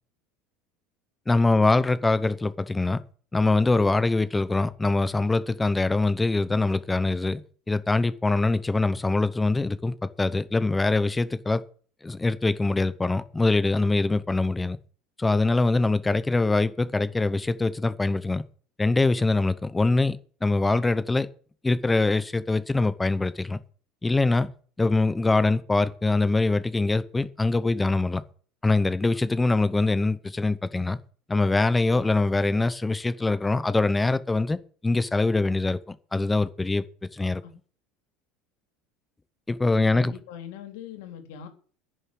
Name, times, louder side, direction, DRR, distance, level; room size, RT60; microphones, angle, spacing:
voice 1, 1.3-3.0 3.3-7.4 7.7-11.6 12.0-14.8 15.2-18.4 18.8-21.3 21.6-23.6 24.0-24.5 24.8-28.2 28.6-31.0 31.3-34.6 34.8-36.8 37.1-37.4 39.5-40.1, left 3 dB, 10° left, 0.8 m, -23 dB
voice 2, 39.7-41.5, left 10 dB, 75° left, 3.4 m, -41 dB
10.5 x 6.9 x 9.3 m
cardioid pair, 165°, 0 cm